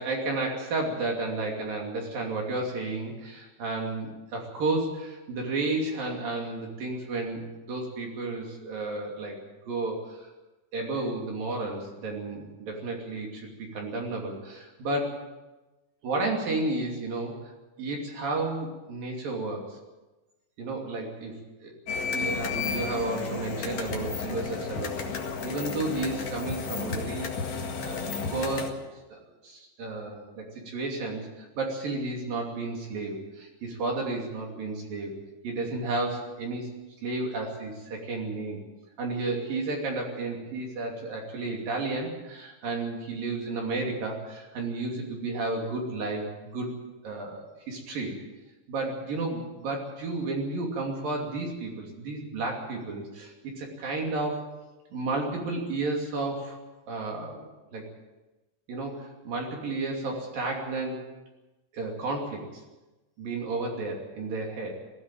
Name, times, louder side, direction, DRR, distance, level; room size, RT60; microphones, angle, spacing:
voice 1, 0.0-9.4 9.7-10.3 10.7-15.2 16.0-17.5 17.8-19.8 20.6-21.7 22.1-25.0 25.4-28.8 29.1-35.1 35.4-36.7 37.0-38.6 39.0-46.7 47.0-48.1 48.7-54.5 54.9-56.6 56.9-57.4 57.7-57.8 58.7-61.0 61.7-62.6 63.2-64.8, right 2 dB, 55° right, 0 dB, 4.3 m, -32 dB
sound 1, 21.9-28.7, left 5 dB, 50° left, 2.5 m, -32 dB
19.0 x 16.0 x 9.0 m, 1.1 s
omnidirectional pair, 5.1 m